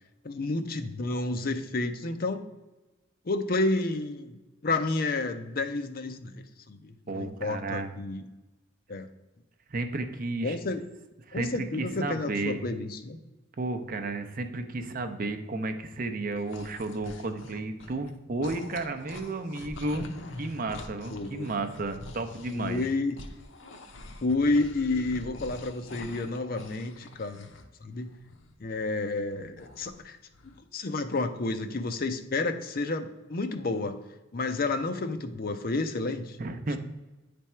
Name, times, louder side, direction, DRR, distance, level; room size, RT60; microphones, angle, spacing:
voice 1, 0.2-2.4 3.3-8.2 8.9-9.1 10.4-10.8 11.3-13.2 21.1-21.5 22.5-23.2 24.2-27.5 27.8-28.1 28.6-30.2 30.7-34.0 34.3-36.4, left 2 dB, 50° left, 8 dB, 0.6 m, -30 dB
voice 2, 7.1-7.9 9.7-10.6 11.3-12.6 13.6-20.1 20.4-22.9 36.4-36.8, right 2 dB, 45° right, 8 dB, 0.6 m, -33 dB
sound 1, 16.2-18.1 18.4-27.7 27.9-30.0 30.3-30.6, left 2 dB, 80° left, 0.8 m, -45 dB
9.4 x 3.5 x 4.3 m, 1.1 s
head